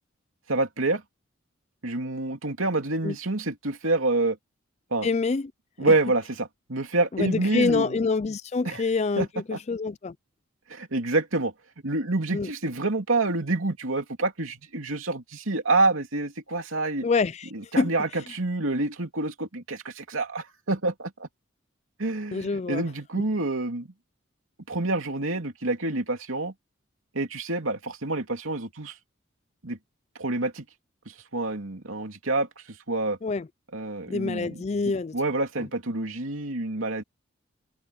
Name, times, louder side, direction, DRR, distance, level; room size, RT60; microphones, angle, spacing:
voice 1, 0.5-1.0 1.8-4.4 4.9-5.1 5.8-8.0 8.6-8.8 9.2-9.6 10.7-11.5 11.8-17.0 17.5-21.3 22.0-23.9 24.7-26.5 27.1-29.0 29.6-29.8 30.2-30.6 31.1-33.2 33.7-34.6 35.1-37.0, right 2 dB, 85° right, 2.8 m, -27 dB
voice 2, 5.0-5.5 7.1-10.1 12.3-12.5 17.0-17.5 17.8-17.9 22.3-22.8 33.2-33.5 34.1-35.2, left 4 dB, 35° left, 0.4 m, -26 dB
open air
head